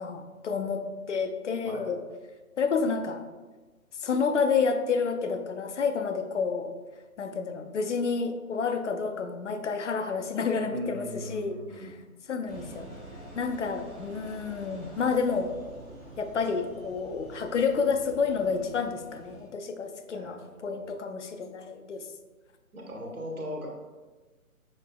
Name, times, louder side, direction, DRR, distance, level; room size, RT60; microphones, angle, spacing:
voice 1, 0.0-2.0 2.6-3.2 4.0-6.7 7.2-11.6 12.3-12.9 13.3-15.5 16.2-22.0, left 5 dB, 55° left, 7 dB, 0.5 m, -29 dB
voice 2, 10.6-12.0 20.1-21.0 22.7-23.7, equal, 75° right, -1 dB, 1.4 m, -39 dB
Engine, 12.5-19.5, right 1 dB, 10° right, 0.7 m, -47 dB
6.4 x 3.3 x 2.2 m, 1.3 s
figure-of-eight pair, 150°, 44 cm